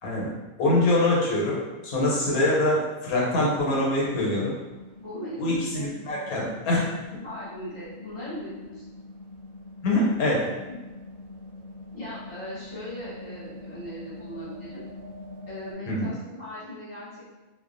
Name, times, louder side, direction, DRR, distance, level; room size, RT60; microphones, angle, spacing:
voice 1, 0.0-0.3 0.6-4.5 5.4-6.9 9.8-10.5 15.9-16.1, left 1 dB, 85° left, -4 dB, 1.2 m, -24 dB
sound 1, 3.7-15.7, left 2 dB, 65° right, 0.9 m, -44 dB
voice 2, 5.0-5.9 6.4-8.8 10.7-10.8 11.9-14.8 15.5-17.3, equal, 30° left, -8 dB, 0.6 m, -39 dB
2.4 x 2.2 x 2.4 m, 1.1 s
omnidirectional pair, 1.5 m